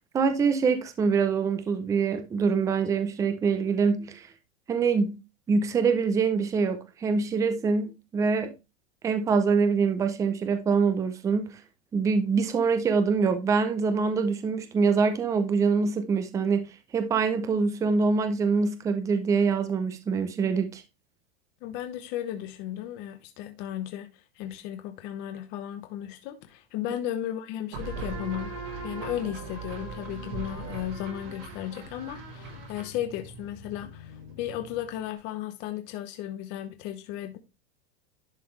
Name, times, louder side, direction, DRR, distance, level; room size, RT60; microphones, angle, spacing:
voice 1, 0.1-4.3 4.7-5.2 5.5-8.6 9.0-11.6 11.9-20.8, right 5 dB, 10° right, 0.5 m, -25 dB
voice 2, 21.6-24.1 24.4-28.5 28.8-37.4, left 12 dB, 35° left, 0.8 m, -35 dB
sound 1, 27.7-35.1, right 3 dB, 70° right, 3.7 m, -39 dB
11.0 x 3.9 x 3.2 m
supercardioid pair, 160°, 31 cm